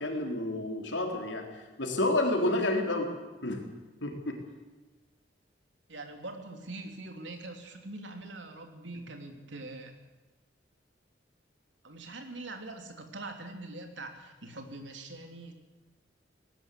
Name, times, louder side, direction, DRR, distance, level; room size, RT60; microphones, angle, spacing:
voice 1, 0.0-1.4 1.8-3.1 3.4-3.6 4.0-4.4, left 1 dB, 80° left, 2 dB, 3.8 m, -29 dB
voice 2, 5.9-10.0 11.8-15.5, right 2 dB, 80° right, 4 dB, 3.1 m, -43 dB
19.0 x 18.5 x 8.4 m, 1.2 s
head